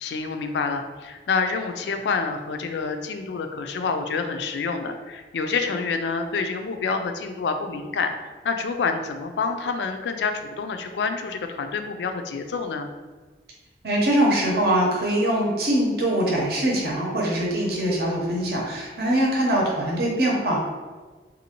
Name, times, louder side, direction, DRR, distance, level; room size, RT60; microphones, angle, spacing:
voice 1, 0.0-12.9, left 4 dB, 80° left, 6 dB, 0.4 m, -27 dB
voice 2, 13.8-20.6, right 1 dB, 60° right, -2 dB, 0.7 m, -23 dB
3.7 x 2.6 x 2.9 m, 1.4 s
head